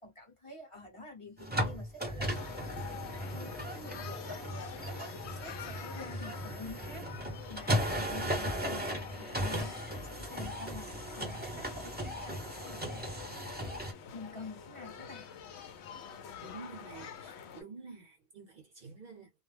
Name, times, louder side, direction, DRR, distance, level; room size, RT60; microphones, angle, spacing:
voice 1, 0.0-2.3 3.3-4.8 5.3-7.1 7.5-8.9 9.2-9.8 10.1-13.0 14.1-15.3, left 3 dB, 30° left, 0.9 m, -48 dB
sound 1, 1.4-13.9, equal, 10° right, 0.7 m, -36 dB
sound 2, 2.2-17.6, left 7 dB, 80° left, 0.9 m, -47 dB
voice 2, 16.4-19.3, right 4 dB, 50° right, 0.8 m, -49 dB
2.4 x 2.1 x 3.2 m
omnidirectional pair, 1.1 m